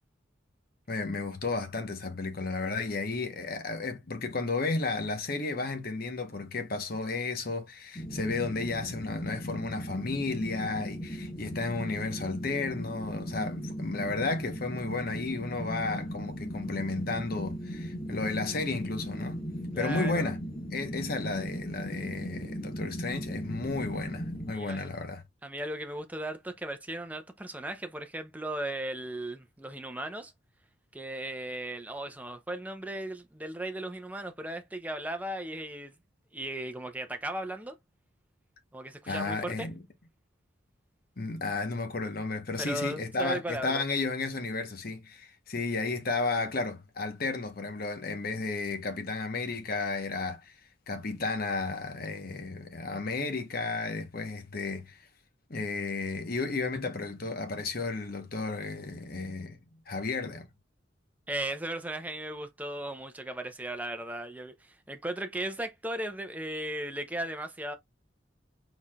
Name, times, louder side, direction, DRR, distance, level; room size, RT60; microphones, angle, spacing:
voice 1, 0.9-19.4 19.8-20.4 20.7-25.2 39.1-39.8 41.2-50.6 50.9-55.0 55.5-59.6 59.9-60.5, left 3 dB, 50° left, 1.0 m, -33 dB
sound 1, 7.9-24.5, equal, 30° left, 1.1 m, -37 dB
voice 2, 19.7-20.3 24.5-24.9 25.4-30.3 30.9-35.9 36.3-37.7 38.7-39.7 42.6-43.8 61.3-67.7, right 1 dB, 10° right, 0.6 m, -36 dB
4.7 x 4.1 x 2.3 m
head